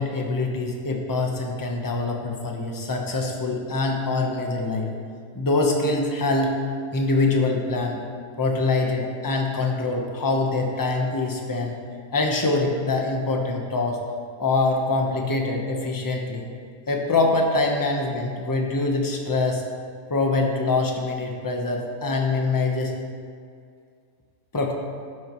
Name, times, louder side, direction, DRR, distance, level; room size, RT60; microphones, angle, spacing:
voice 1, 0.0-4.9 5.3-6.5 6.9-8.0 8.4-11.8 12.1-14.0 14.4-16.4 16.9-19.6 20.1-22.9 24.5-24.7, left 3 dB, 15° left, 1 dB, 0.7 m, -24 dB
12.5 x 9.3 x 3.1 m, 2.2 s
omnidirectional pair, 1.8 m